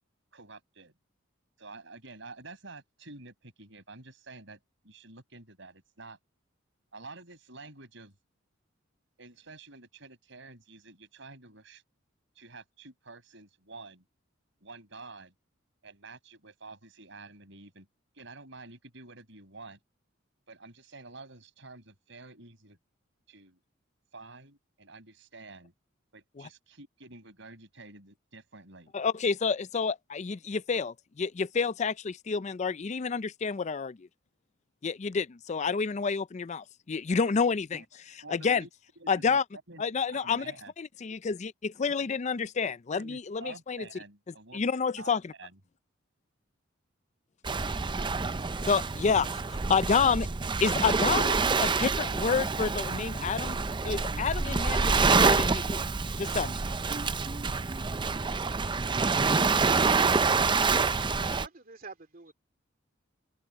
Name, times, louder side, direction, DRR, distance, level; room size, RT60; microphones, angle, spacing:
voice 1, 0.3-0.9 1.6-6.2 6.9-8.2 9.2-11.8 12.4-14.0 14.6-15.3 15.8-17.9 18.1-19.8 20.5-22.8 23.3-23.6 24.1-25.7 26.1-28.9 37.7-37.9 38.2-38.7 39.0-39.4 39.7-39.8 40.1-40.7 42.6-44.6 45.0-45.1 45.4-45.6, right 3 dB, 70° right, 7.4 m, -49 dB
voice 2, 28.9-34.1 34.8-37.8 38.3-38.6 39.1-39.4 39.8-40.5 40.8-43.8 44.5-45.3 48.6-50.3 50.6-53.6 53.8-55.8 56.2-56.6, left 5 dB, 35° left, 0.4 m, -29 dB
Waves surf, 47.4-61.5, right 4 dB, 25° right, 0.5 m, -27 dB
voice 3, 61.1-62.3, right 4 dB, 45° right, 2.6 m, -46 dB
head